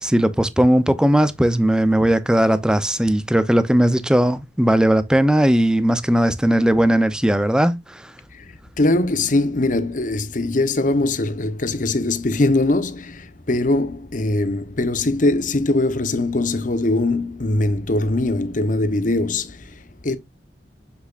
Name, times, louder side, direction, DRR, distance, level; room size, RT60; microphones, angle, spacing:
voice 1, 0.0-8.1, right 1 dB, 5° right, 0.6 m, -18 dB
voice 2, 8.3-20.2, left 2 dB, 45° left, 0.9 m, -21 dB
7.5 x 6.7 x 2.5 m
head